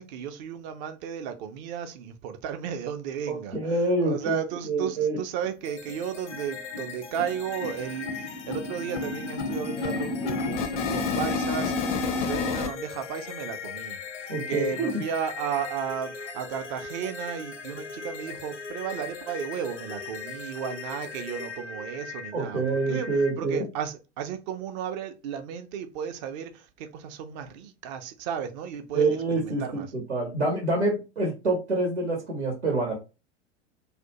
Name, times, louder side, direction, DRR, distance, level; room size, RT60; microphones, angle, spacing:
voice 1, 0.0-29.9, right 8 dB, 40° right, 0.5 m, -34 dB
voice 2, 3.5-4.4 4.6-5.2 14.3-15.0 22.3-23.6 28.9-33.0, right 2 dB, 80° right, 0.9 m, -26 dB
sound 1, 5.4-5.5 5.9-6.0 6.3-6.5 6.7-12.7, left 4 dB, 25° left, 0.4 m, -30 dB
sound 2, 5.6-23.3, left 5 dB, 85° left, 0.5 m, -39 dB
2.5 x 2.1 x 2.8 m
figure-of-eight pair, 90°, 35 cm